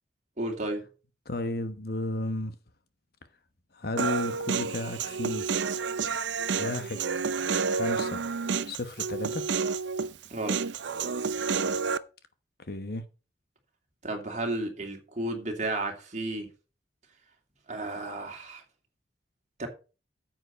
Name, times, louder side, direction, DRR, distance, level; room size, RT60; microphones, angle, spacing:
voice 1, 0.4-0.9 10.3-10.6 14.0-16.5 17.7-18.6 19.6-19.7, right 2 dB, 40° right, 2.6 m, -33 dB
voice 2, 1.2-2.6 3.7-5.5 6.6-7.2 7.7-8.2 8.7-9.5 12.6-13.0, left 2 dB, 60° left, 1.1 m, -33 dB
Human voice, 4.0-12.0, right 5 dB, 80° right, 0.6 m, -30 dB
9.5 x 7.8 x 4.4 m
head